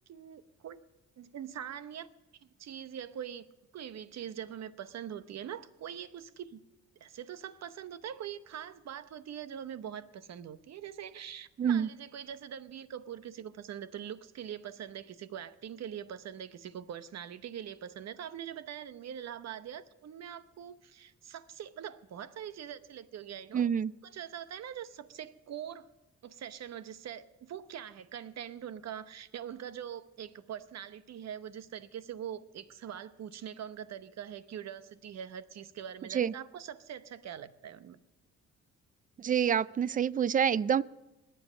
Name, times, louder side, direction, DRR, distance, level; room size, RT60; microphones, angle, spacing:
voice 1, 0.1-0.8 1.2-2.1 2.4-3.5 3.7-6.6 7.0-23.7 24.0-25.9 26.2-38.0, right 9 dB, 60° right, 13 dB, 0.9 m, -43 dB
voice 2, 11.6-11.9 23.5-23.9 36.1-36.3 39.2-40.8, right 8 dB, 30° right, 21 dB, 0.3 m, -27 dB
20.5 x 7.9 x 5.1 m, 1.0 s
cardioid pair, 90°, 30 cm